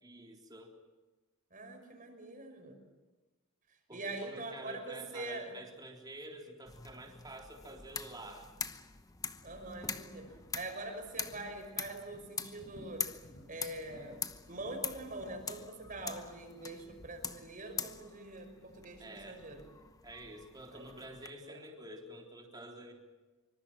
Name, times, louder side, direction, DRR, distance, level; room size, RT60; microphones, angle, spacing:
voice 1, 0.0-0.7 3.9-8.5 19.0-19.4 20.0-22.9, right 1 dB, 20° right, 1 dB, 3.7 m, -49 dB
voice 2, 1.5-2.8 3.9-5.5 9.4-13.1 13.5-19.6 20.7-21.0 21.4-21.6, right 2 dB, 40° right, 5 dB, 5.6 m, -44 dB
sound 1, 6.7-21.3, left 5 dB, 15° left, 0.9 m, -44 dB
sound 2, 9.4-9.8 10.2-10.6 11.1-11.5 11.8-12.2 12.5-13.5 13.8-15.6, left 1 dB, 55° left, 6.6 m, -56 dB
25.5 x 25.0 x 7.6 m, 1.2 s
head